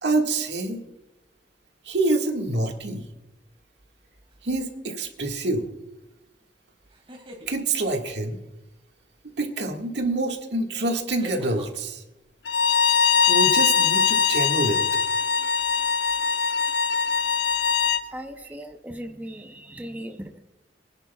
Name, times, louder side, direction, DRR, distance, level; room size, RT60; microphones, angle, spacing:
voice 1, 0.0-0.8 1.9-3.0 4.4-5.7 7.5-8.4 9.4-12.0 13.3-14.8 18.4-18.6, right 2 dB, 75° right, 2 dB, 1.8 m, -26 dB
sound 1, 4.3-4.7 6.9-7.5 9.8-9.9 11.2-11.7, equal, 30° right, 2.3 m, -43 dB
Bowed string instrument, 12.5-18.0, left 6 dB, 80° left, 0.9 m, -22 dB
voice 2, 18.1-20.4, equal, 10° right, 4 dB, 0.6 m, -38 dB
24.0 x 10.5 x 2.3 m, 0.97 s
head